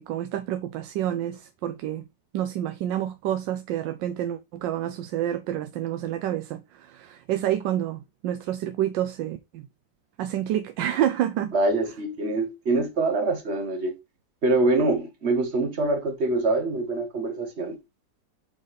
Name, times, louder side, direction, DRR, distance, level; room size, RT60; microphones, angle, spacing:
voice 1, 0.0-2.0 2.3-9.6 10.2-11.5, right 11 dB, 85° right, 1.3 m, -28 dB
voice 2, 11.5-13.9 14.4-17.8, right 2 dB, 40° right, 1.4 m, -24 dB
5.4 x 4.0 x 5.0 m
omnidirectional pair, 1.9 m